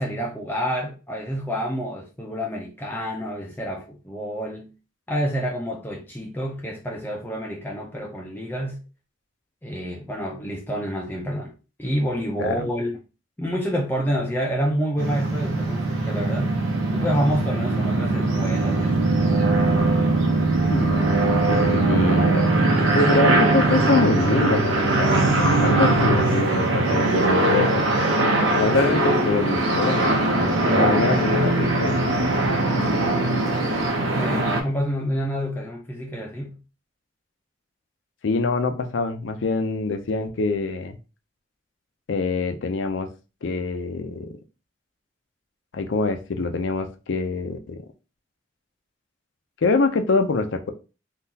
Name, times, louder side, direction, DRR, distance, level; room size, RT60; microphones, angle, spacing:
voice 1, 0.0-4.7 5.1-8.8 9.6-11.5 11.8-13.0 13.4-16.6 16.9-19.1 34.0-36.6, equal, 10° left, 0.4 m, -28 dB
sound 1, 15.0-34.6, right 2 dB, 90° right, 0.8 m, -21 dB
voice 2, 20.7-22.5 22.9-27.8 28.6-32.5 38.2-41.0 42.1-43.1 43.4-44.3 45.7-47.8 49.6-50.7, left 3 dB, 75° left, 0.5 m, -25 dB
3.7 x 2.4 x 2.7 m
head